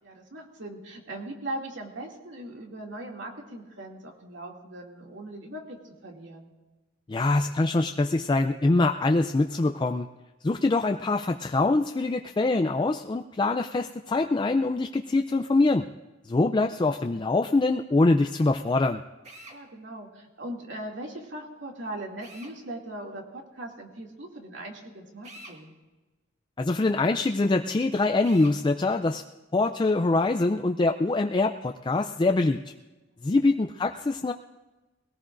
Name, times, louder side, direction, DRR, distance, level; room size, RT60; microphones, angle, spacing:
voice 1, 0.0-6.5 19.5-25.7 33.3-33.6, right 1 dB, 80° right, 0 dB, 2.5 m, -40 dB
voice 2, 7.1-10.1 10.4-15.9 16.2-19.0 26.6-29.2 29.5-32.6 33.2-34.3, left 2 dB, 25° left, 5 dB, 0.4 m, -24 dB
Drill, 19.2-19.6 22.2-22.6 25.2-25.6 28.2-28.6, right 1 dB, 40° right, 1.8 m, -46 dB
21.0 x 18.0 x 2.6 m, 1.2 s
head